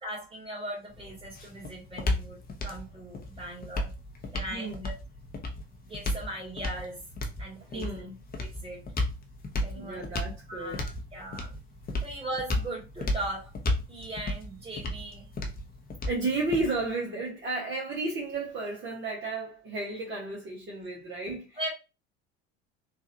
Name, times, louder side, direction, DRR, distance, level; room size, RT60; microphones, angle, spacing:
voice 1, 0.0-3.9 4.3-4.9 5.8-7.0 7.4-7.9 8.4-8.8 9.6-10.0 10.5-10.8 11.1-11.5 12.0-13.6 13.9-15.3 21.6-21.7, right 1 dB, 15° right, 2.1 m, -38 dB
sound 1, 0.9-16.9, left 1 dB, 30° left, 0.9 m, -34 dB
voice 2, 4.5-4.9 7.6-8.2 9.7-10.8 16.1-21.6, right 3 dB, 35° right, 1.4 m, -33 dB
3.9 x 2.6 x 2.7 m
hypercardioid pair, 75°, 32 cm